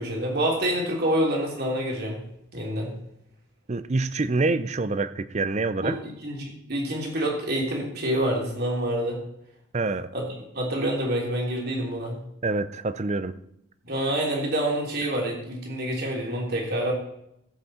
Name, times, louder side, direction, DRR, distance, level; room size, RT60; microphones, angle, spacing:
voice 1, 0.0-2.2 2.5-2.9 5.8-9.2 10.1-10.2 10.5-12.2 13.8-16.9, right 1 dB, 50° right, 3.3 m, -27 dB
voice 2, 3.7-6.0 9.7-10.1 12.4-13.3, right 3 dB, 35° right, 0.5 m, -26 dB
14.5 x 8.2 x 4.3 m
head